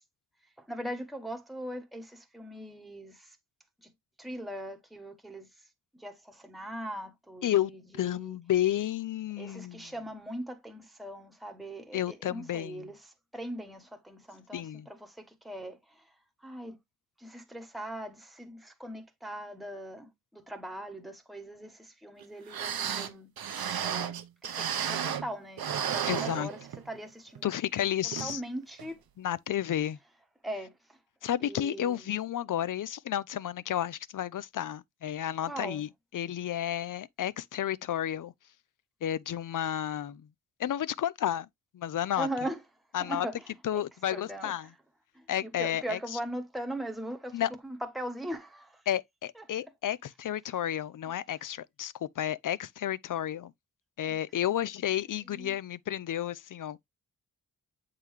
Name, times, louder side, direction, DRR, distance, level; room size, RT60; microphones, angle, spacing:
voice 1, 0.7-3.1 4.2-5.5 6.0-6.1 6.4-7.5 8.1-8.2 9.4-12.0 12.3-12.9 13.3-14.6 15.0-15.1 15.4-15.8 16.4-16.8 17.2-20.1 20.3-21.7 22.0-23.3 23.6-24.1 24.5-26.6 26.9-27.5 28.2-28.9 30.4-30.7 31.5-32.1 35.5-35.8 42.2-42.6 43.1-43.3 44.1-44.5 45.6-47.4 48.0-48.7 54.1-54.2, right 1 dB, ahead, 1.0 m, -39 dB
voice 2, 7.4-9.9 11.9-12.9 14.5-14.9 26.0-26.5 27.4-28.4 29.2-30.0 31.2-38.3 39.0-40.3 40.6-41.5 41.7-42.3 42.9-44.7 45.3-46.2 47.3-47.5 48.9-53.5 54.0-56.8, left 11 dB, 60° left, 0.4 m, -32 dB
sound 1, 22.2-22.3 22.5-25.3 25.6-27.0 27.4-27.5 28.1-28.4 28.8-28.9, right 8 dB, 75° right, 0.8 m, -33 dB
8.1 x 3.8 x 3.1 m
wide cardioid pair, 160°, 37 cm